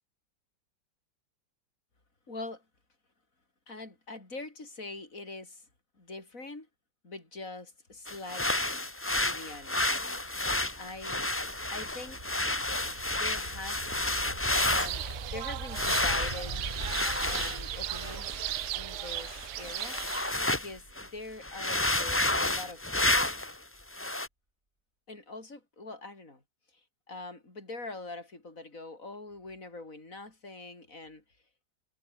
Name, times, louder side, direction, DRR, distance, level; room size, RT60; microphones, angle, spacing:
voice 1, 2.3-2.6 3.7-5.7 6.0-6.7 7.0-8.9 9.2-10.2 10.8-11.3 11.7-12.2 13.1-14.1 14.7-15.1 15.3-16.6 17.2-18.5 18.7-20.0 20.5-23.3 25.1-26.4 26.7-31.2, left 2 dB, 45° left, 6.3 m, -43 dB
sound 1, 8.1-15.1 15.7-20.7 21.0-21.1 21.4-23.6 23.9-24.3, left 2 dB, 10° left, 0.8 m, -31 dB
sound 2, 9.4-22.7, right 1 dB, 25° right, 4.7 m, -44 dB
sound 3, 14.5-20.3, right 16 dB, 75° right, 1.1 m, -37 dB
omnidirectional pair, 1.9 m